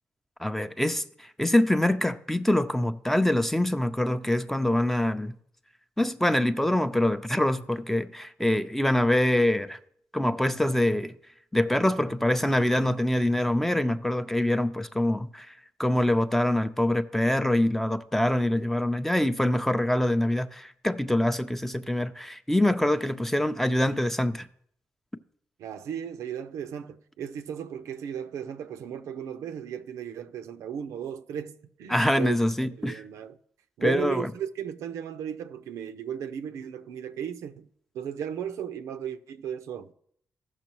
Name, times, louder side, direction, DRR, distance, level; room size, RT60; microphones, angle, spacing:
voice 1, 0.4-1.0 1.4-5.3 6.0-9.8 10.1-11.1 11.5-15.5 15.8-24.5 31.9-33.0 33.8-34.3, left 1 dB, 5° left, 0.5 m, -24 dB
voice 2, 25.6-32.4 32.8-33.4 33.8-37.7 37.9-39.9, right 8 dB, 85° right, 0.5 m, -35 dB
15.0 x 6.0 x 3.0 m
cardioid pair, 80°, 5 cm